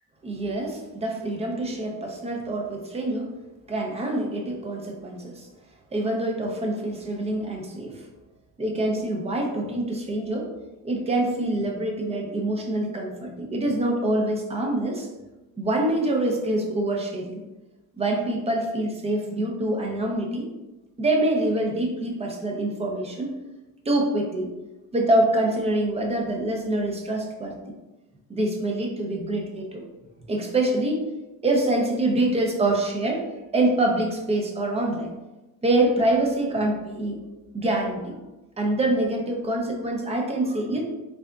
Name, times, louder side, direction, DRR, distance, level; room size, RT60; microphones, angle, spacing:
voice 1, 0.2-3.3 3.7-5.5 5.9-8.0 8.6-10.5 10.8-15.1 15.6-17.4 18.0-20.5 21.0-23.4 23.9-24.5 24.9-27.6 28.3-29.8 30.3-31.0 31.4-33.3 33.5-35.1 35.6-37.2 37.5-38.1 38.6-40.8, right 1 dB, 20° right, 1 dB, 0.4 m, -25 dB
3.7 x 3.4 x 2.3 m, 1.1 s
cardioid pair, 160°, 35 cm